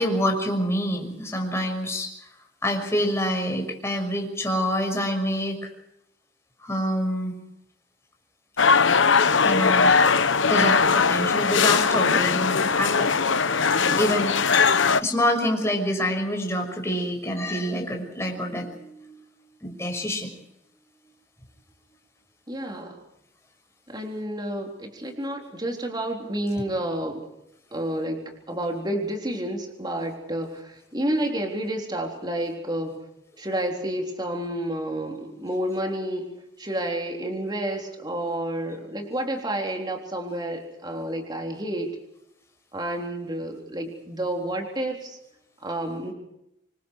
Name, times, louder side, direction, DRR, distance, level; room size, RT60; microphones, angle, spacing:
voice 1, 0.0-2.1 2.6-5.7 6.6-7.4 9.2-9.9 10.5-13.1 14.0-14.3 15.0-19.2 19.6-20.3, equal, 15° left, 2 dB, 6.1 m, -26 dB
sound 1, 8.6-15.0, left 5 dB, 75° left, 1.0 m, -20 dB
voice 2, 13.8-14.3 22.5-23.0 23.9-27.2 27.7-33.0 33.4-36.3 36.6-42.0 42.7-45.2 45.6-46.1, right 1 dB, 20° right, 2 dB, 3.8 m, -30 dB
27.0 x 24.5 x 4.8 m, 0.82 s
head